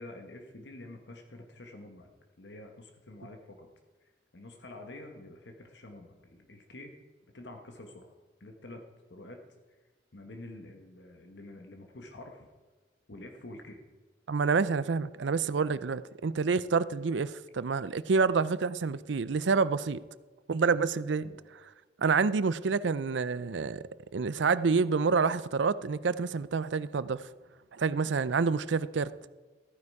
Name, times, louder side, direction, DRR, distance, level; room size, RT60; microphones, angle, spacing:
voice 1, 0.0-2.1 2.4-3.7 4.3-6.9 7.3-8.1 8.4-8.8 9.1-9.4 10.1-12.5 13.1-13.8 21.2-21.4, left 2 dB, 75° left, 1.4 m, -47 dB
voice 2, 14.3-20.0 20.5-21.3 22.0-23.8 24.1-27.2 27.7-29.1, right 5 dB, 85° right, 0.5 m, -28 dB
14.5 x 9.7 x 4.8 m
head